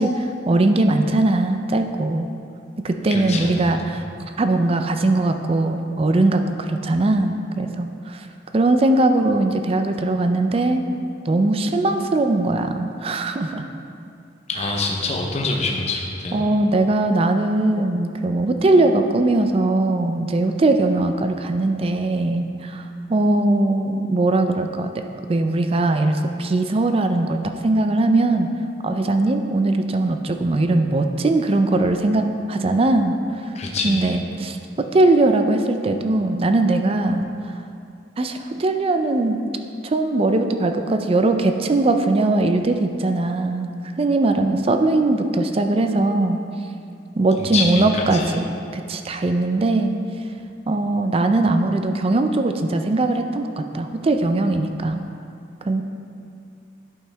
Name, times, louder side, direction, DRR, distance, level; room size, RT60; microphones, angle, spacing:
voice 1, 0.0-2.3 2.8-4.0 4.4-8.3 8.5-10.8 11.3-13.7 16.3-25.0 25.3-28.5 28.8-33.2 33.8-37.3 38.2-39.5 39.8-43.7 44.0-46.4 47.2-49.9 50.7-55.0 55.6-55.8, right 2 dB, 35° right, 6 dB, 0.4 m, -20 dB
voice 2, 3.1-4.0 14.5-16.4 33.5-34.2 47.4-48.4, left 3 dB, 40° left, 0 dB, 0.7 m, -26 dB
11.0 x 5.5 x 3.4 m, 2.4 s
head